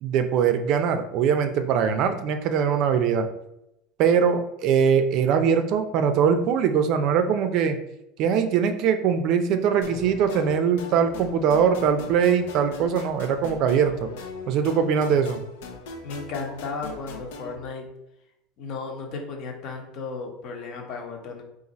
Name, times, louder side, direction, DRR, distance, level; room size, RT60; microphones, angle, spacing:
voice 1, 0.0-3.3 4.0-7.8 8.2-14.1 14.5-15.4, right 7 dB, 50° right, 8 dB, 0.4 m, -22 dB
sound 1, 9.8-17.6, left 4 dB, 90° left, 0.6 m, -40 dB
voice 2, 16.0-17.9 18.6-21.4, left 4 dB, 50° left, 2 dB, 1.0 m, -34 dB
3.9 x 2.6 x 4.1 m, 0.85 s
supercardioid pair, 145°, 0 cm